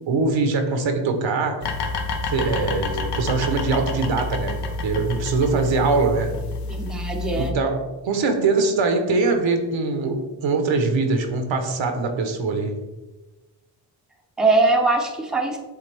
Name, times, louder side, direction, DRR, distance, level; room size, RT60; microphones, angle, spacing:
voice 1, 0.1-1.7 2.3-6.3 7.3-12.8, right 3 dB, 75° right, 6 dB, 1.0 m, -22 dB
sound 1, 1.6-7.5, left 3 dB, 60° left, 1.0 m, -29 dB
voice 2, 6.7-7.6 14.4-15.6, right 3 dB, ahead, 1 dB, 0.7 m, -21 dB
7.9 x 3.5 x 3.4 m, 1.1 s
cardioid pair, 100°, 46 cm